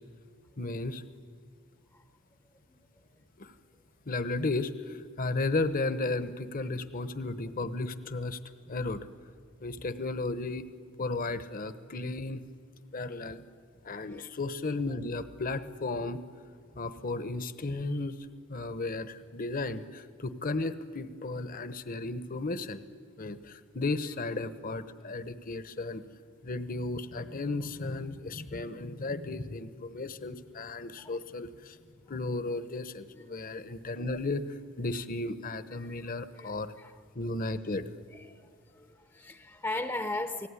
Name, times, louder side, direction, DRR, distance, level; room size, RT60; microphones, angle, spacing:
voice 1, 0.6-1.0 3.4-3.5 4.1-8.4 8.7-9.0 9.6-10.7 11.0-12.4 12.9-13.4 13.8-16.2 16.7-18.1 18.5-22.8 23.2-26.0 26.4-31.8 32.1-36.7 37.1-37.9, left 2 dB, 40° left, 12 dB, 1.0 m, -34 dB
voice 2, 13.9-14.3 31.0-31.2 33.1-33.2 36.3-36.9 38.1-40.5, left 2 dB, 15° left, 9 dB, 0.8 m, -38 dB
28.5 x 19.0 x 9.8 m, 2.1 s
head